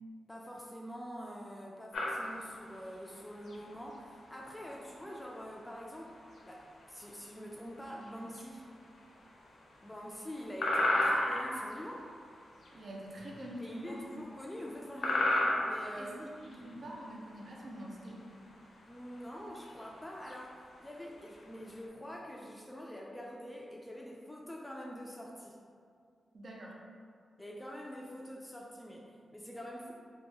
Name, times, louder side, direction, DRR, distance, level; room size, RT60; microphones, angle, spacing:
voice 1, 0.3-6.1 6.5-8.6 9.8-12.1 13.6-15.4 15.6-16.2 18.9-25.6 27.4-29.9, equal, 10° left, -2 dB, 0.3 m, -45 dB
sound 1, 1.9-21.9, left 1 dB, 75° left, 0.5 m, -36 dB
voice 2, 12.7-14.1 16.0-18.3 26.3-26.8, equal, 55° right, -2 dB, 0.5 m, -45 dB
2.8 x 2.2 x 3.4 m, 2.2 s
cardioid pair, 80°, 0 cm